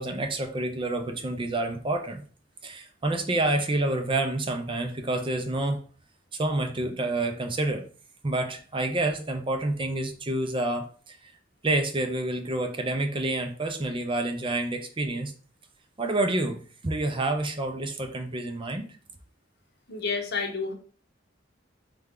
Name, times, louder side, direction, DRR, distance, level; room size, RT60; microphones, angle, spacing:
voice 1, 0.0-2.2 2.6-5.8 6.3-7.9 8.2-11.3 11.6-15.3 16.0-18.9, right 2 dB, 30° right, 5 dB, 0.6 m, -28 dB
voice 2, 19.9-20.7, left 4 dB, 60° left, 3 dB, 0.9 m, -29 dB
3.4 x 3.3 x 3.7 m, 0.41 s
head